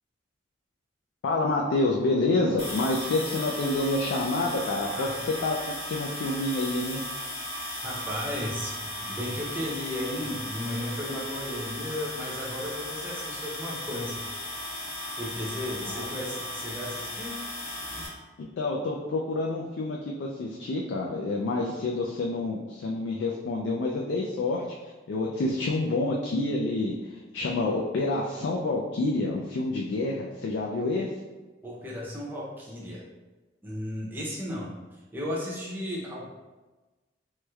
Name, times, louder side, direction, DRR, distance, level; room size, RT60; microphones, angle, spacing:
voice 1, 1.2-5.1 5.4-7.0 15.9-16.1 18.6-24.7 25.1-31.1, left 2 dB, 70° left, -1 dB, 0.3 m, -28 dB
sound 1, 2.6-18.1, left 1 dB, 35° left, 1.4 m, -36 dB
voice 2, 7.8-14.2 15.2-17.4 31.6-33.0 33.6-34.7 35.1-36.3, left 1 dB, 10° right, -5 dB, 0.6 m, -34 dB
3.0 x 3.0 x 2.3 m, 1.2 s
head